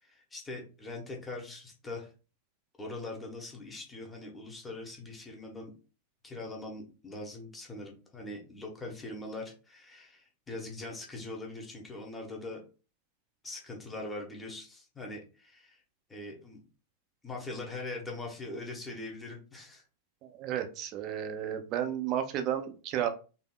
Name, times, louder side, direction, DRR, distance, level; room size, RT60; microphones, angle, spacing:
voice 1, 0.0-2.1 2.8-5.7 6.2-12.6 13.4-15.8 16.1-16.6 17.2-19.8, left 2 dB, 15° left, 0 dB, 1.0 m, -42 dB
voice 2, 20.2-23.1, right 10 dB, 40° right, 8 dB, 0.5 m, -32 dB
4.0 x 2.7 x 2.3 m, 0.34 s
figure-of-eight pair, 90°, 0 cm